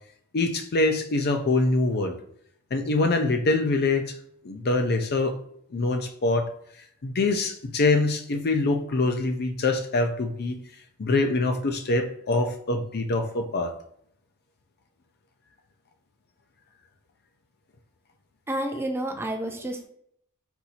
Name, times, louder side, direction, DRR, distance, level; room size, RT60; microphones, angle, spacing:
voice 1, 0.3-2.2 2.7-4.2 4.4-5.4 5.7-6.5 7.0-10.6 11.0-13.7, left 2 dB, 45° left, 6 dB, 0.5 m, -24 dB
voice 2, 18.5-19.9, right 1 dB, 10° right, 4 dB, 0.4 m, -30 dB
4.4 x 2.7 x 4.1 m, 0.68 s
head